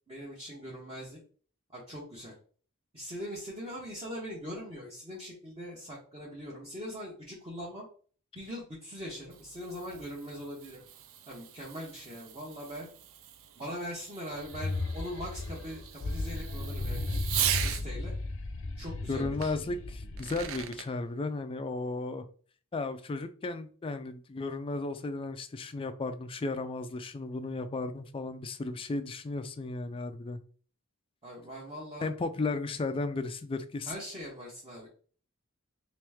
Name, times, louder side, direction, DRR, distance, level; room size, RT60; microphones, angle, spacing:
voice 1, 0.1-1.2 1.7-2.3 2.9-7.9 8.3-10.8 11.3-12.9 13.6-17.2 17.6-18.1 18.8-19.5 31.2-32.1 33.9-34.9, equal, 25° right, -5 dB, 1.0 m, -41 dB
Fireworks, 9.0-17.9 19.4-19.5 20.0-20.9, right 10 dB, 60° right, 0.4 m, -39 dB
sound 1, 14.4-20.7, left 2 dB, 60° left, 0.6 m, -35 dB
voice 2, 19.1-22.3 22.7-30.4 32.0-33.9, left 3 dB, 25° left, 10 dB, 0.4 m, -34 dB
3.1 x 3.0 x 3.5 m, 0.42 s
head